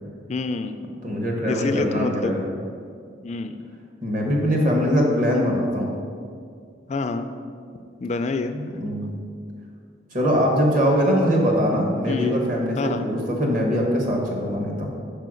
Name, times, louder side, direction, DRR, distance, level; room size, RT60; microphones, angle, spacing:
voice 1, 0.3-0.8 1.5-2.3 3.2-3.6 6.9-7.3 8.0-8.5 12.1-12.3 12.8-13.1, left 3 dB, 35° left, 8 dB, 0.3 m, -27 dB
voice 2, 1.0-2.5 4.0-5.9 8.5-9.2 10.1-14.9, equal, 40° right, -1 dB, 1.2 m, -22 dB
5.5 x 4.5 x 6.3 m, 2.2 s
head